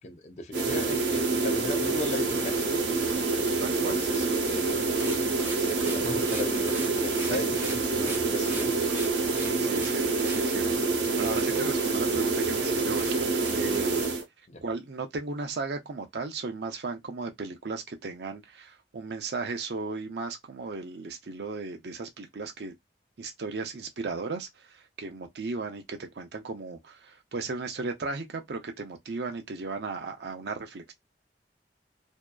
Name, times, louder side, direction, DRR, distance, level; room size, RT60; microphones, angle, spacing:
voice 1, 0.0-3.0 3.6-4.9 5.6-8.7 14.5-14.6, left 1 dB, 40° left, 0.5 m, -37 dB
sound 1, 0.5-14.2, right 3 dB, 90° right, 0.9 m, -27 dB
voice 2, 3.6-4.0 7.3-7.4 7.9-8.0 9.6-10.7 11.1-14.0 14.6-22.7 23.2-30.9, right 3 dB, 70° right, 0.5 m, -35 dB
sound 2, 4.9-9.9 10.2-10.7 11.2-11.3 11.9-12.0 12.3-12.4 12.9-13.5, right 2 dB, 10° right, 0.4 m, -40 dB
2.7 x 2.2 x 2.3 m
head